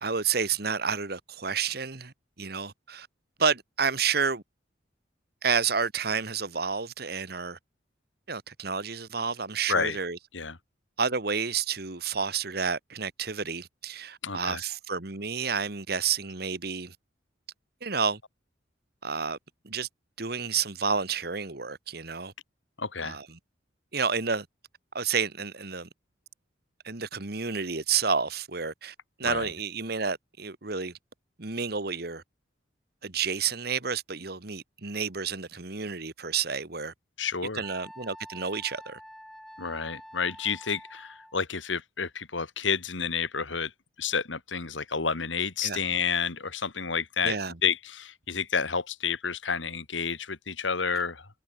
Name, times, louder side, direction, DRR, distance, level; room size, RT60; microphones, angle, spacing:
voice 1, 0.0-3.1 3.4-4.4 5.4-7.6 8.3-10.2 11.0-16.9 17.8-18.2 19.0-19.4 19.6-19.9 20.2-22.3 23.0-23.3 23.9-24.5 24.9-25.9 26.8-30.9 31.4-32.2 33.0-36.9 37.5-39.0 45.6-45.8 47.2-47.6, right 5 dB, 55° right, 1.6 m, -30 dB
voice 2, 14.2-14.6 22.8-23.2 29.2-29.5 37.2-37.6 39.6-43.7 44.0-47.4 47.6-51.3, left 6 dB, 85° left, 2.1 m, -30 dB
Wind instrument woodwind instrument, 37.6-41.4, equal, ahead, 2.9 m, -47 dB
head